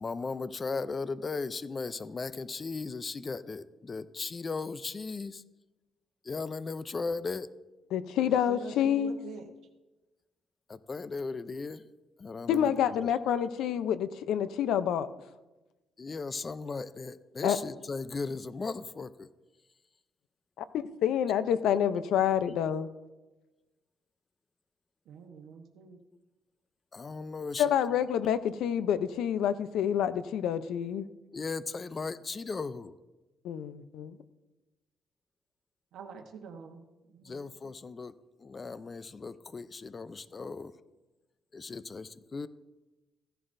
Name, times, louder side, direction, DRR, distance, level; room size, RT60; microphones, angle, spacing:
voice 1, 0.0-5.4 6.2-7.5 10.7-11.9 12.2-12.7 13.0-13.1 16.0-19.3 26.9-27.8 31.3-32.9 37.2-38.1 38.4-40.7 41.5-42.5, left 4 dB, 35° left, 15 dB, 0.5 m, -37 dB
voice 2, 7.9-9.2 12.5-15.1 17.4-17.6 20.6-22.9 27.6-31.1 33.4-34.2, left 9 dB, 85° left, 13 dB, 0.6 m, -28 dB
voice 3, 8.5-9.5 25.1-26.0 35.9-36.8 37.1-37.5, right 6 dB, 80° right, 3 dB, 1.1 m, -45 dB
15.5 x 11.0 x 2.6 m, 1.1 s
cardioid pair, 90°, 0 cm